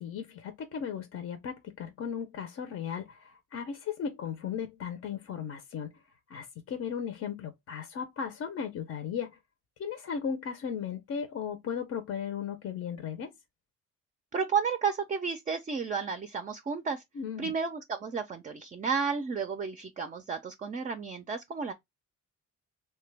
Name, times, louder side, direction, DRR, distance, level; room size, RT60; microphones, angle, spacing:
voice 1, 0.0-5.9 6.3-9.4 9.8-13.3 17.1-17.5, left 7 dB, 55° left, 0.6 m, -36 dB
voice 2, 14.3-17.0 17.4-21.7, right 5 dB, 25° right, 0.4 m, -32 dB
2.9 x 2.2 x 3.2 m
cardioid pair, 90°, 30 cm